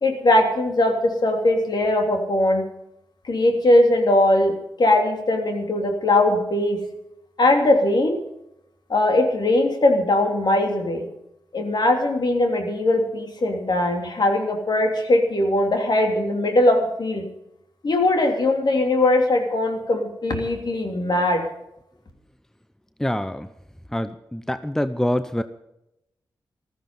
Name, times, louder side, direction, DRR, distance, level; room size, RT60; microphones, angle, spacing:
voice 1, 0.0-2.6 3.2-6.8 7.4-8.2 8.9-11.1 11.5-17.2 17.8-21.4, left 1 dB, 55° left, 3 dB, 3.1 m, -20 dB
voice 2, 23.0-23.5 23.9-25.4, left 1 dB, 5° left, 12 dB, 0.7 m, -25 dB
14.5 x 13.5 x 5.3 m, 0.85 s
cardioid pair, 60°, 8 cm